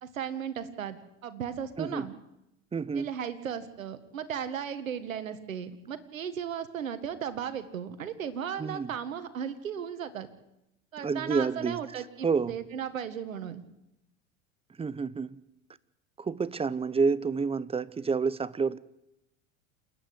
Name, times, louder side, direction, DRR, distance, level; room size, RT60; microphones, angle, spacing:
voice 1, 0.0-2.1 2.9-10.3 10.9-13.6, right 8 dB, 85° right, 11 dB, 1.9 m, -36 dB
voice 2, 2.7-3.1 8.6-8.9 11.0-11.8 12.2-12.5 14.8-15.4 16.2-18.8, right 5 dB, 15° right, 19 dB, 0.8 m, -29 dB
28.5 x 9.5 x 9.6 m, 0.85 s
hypercardioid pair, 85°, 39 cm